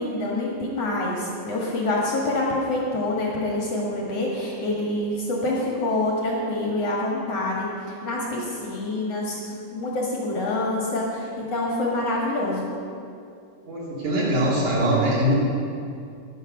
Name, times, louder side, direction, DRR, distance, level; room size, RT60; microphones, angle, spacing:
voice 1, 0.0-12.7, left 2 dB, 50° left, -3 dB, 2.1 m, -26 dB
voice 2, 13.7-15.3, equal, 45° right, -6 dB, 3.7 m, -22 dB
12.5 x 10.5 x 6.7 m, 2.5 s
omnidirectional pair, 5.3 m